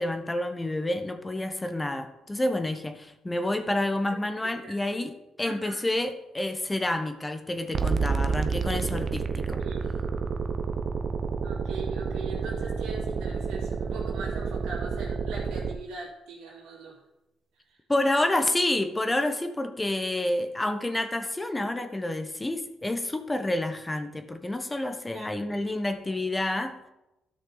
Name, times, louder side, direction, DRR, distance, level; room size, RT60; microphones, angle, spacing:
voice 1, 0.0-9.6 17.9-26.8, left 1 dB, 15° left, 8 dB, 1.0 m, -29 dB
voice 2, 4.4-4.7 5.4-5.8 9.6-9.9 11.4-17.0 17.7-17.8 25.1-25.7, right 4 dB, 90° right, -4 dB, 3.2 m, -41 dB
sound 1, 7.7-15.8, right 5 dB, 50° right, 0.7 m, -29 dB
13.0 x 6.4 x 4.0 m, 0.92 s
cardioid pair, 90°, 0 cm